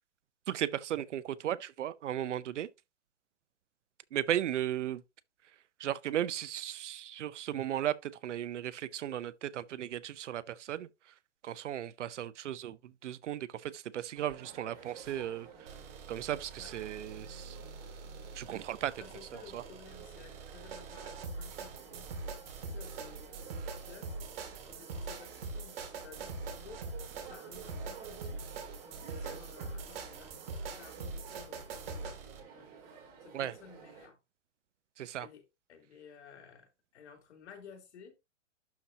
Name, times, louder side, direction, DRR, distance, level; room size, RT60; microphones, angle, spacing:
voice 1, 0.5-2.7 4.1-5.0 5.8-10.9 11.4-15.5 16.1-17.6 18.4-18.9 19.3-19.6 33.3-33.5 35.0-35.3, right 11 dB, 75° right, 0.7 m, -36 dB
sound 1, 14.1-34.1, right 6 dB, 25° right, 3.0 m, -52 dB
sound 2, 15.7-32.4, right 3 dB, 50° right, 2.1 m, -43 dB
voice 2, 19.0-24.2 24.7-32.2 32.6-32.7 33.2-34.2 35.2-38.1, left 6 dB, 65° left, 3.4 m, -55 dB
12.0 x 4.2 x 2.8 m
hypercardioid pair, 155°, 37 cm